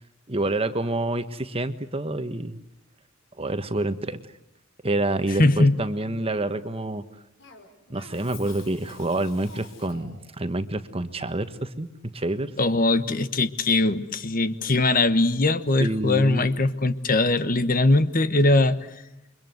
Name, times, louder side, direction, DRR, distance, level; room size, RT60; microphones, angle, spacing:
voice 1, 0.3-2.6 3.4-4.2 4.8-7.0 7.9-11.9 12.1-12.5 15.8-16.5, right 2 dB, 30° right, 10 dB, 1.4 m, -27 dB
voice 2, 5.4-5.9 12.6-18.9, left 2 dB, 45° left, 11 dB, 1.3 m, -21 dB
Cough, 7.4-10.3, left 4 dB, 70° left, 5.1 m, -48 dB
29.0 x 24.0 x 8.0 m, 0.88 s
head